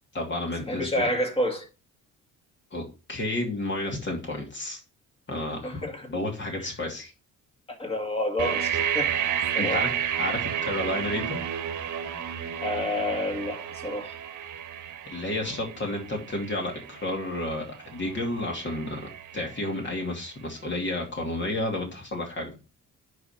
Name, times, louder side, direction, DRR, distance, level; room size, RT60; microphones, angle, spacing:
voice 1, 0.1-1.1 2.7-2.8 3.1-4.8 5.3-7.1 9.5-9.9 10.2-11.4 15.1-19.0 19.3-22.5, left 1 dB, 40° left, 2.6 m, -31 dB
voice 2, 0.7-1.7 5.6-6.1 6.6-6.7 7.7-9.2 9.5-9.9 12.6-14.1, left 1 dB, 20° left, 2.1 m, -29 dB
sound 1, 8.4-20.2, right 9 dB, 75° right, 1.3 m, -32 dB
10.5 x 3.5 x 5.9 m
cardioid pair, 90°, 30 cm